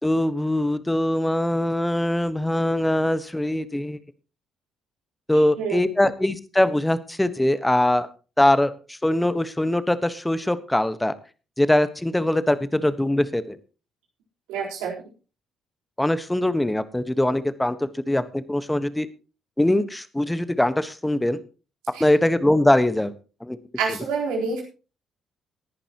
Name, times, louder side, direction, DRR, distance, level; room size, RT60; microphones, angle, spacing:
voice 1, 0.0-4.0 5.3-8.1 8.4-11.1 11.6-13.6 16.0-19.1 19.6-21.4 22.0-23.1 23.4-23.6, left 1 dB, 10° left, 13 dB, 1.4 m, -22 dB
voice 2, 5.3-5.9 14.5-15.0 21.9-22.1 23.8-24.6, right 5 dB, 75° right, -1 dB, 4.1 m, -28 dB
19.0 x 11.0 x 3.0 m, 0.34 s
hypercardioid pair, 45°, 0 cm